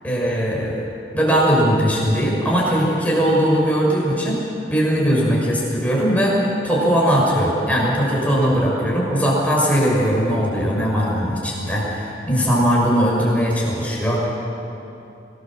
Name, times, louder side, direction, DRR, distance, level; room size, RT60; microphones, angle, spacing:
voice 1, 0.0-0.7 1.1-4.4 4.7-6.4 6.6-14.3, equal, 10° left, -5 dB, 6.0 m, -19 dB
25.0 x 18.5 x 7.6 m, 2.9 s
head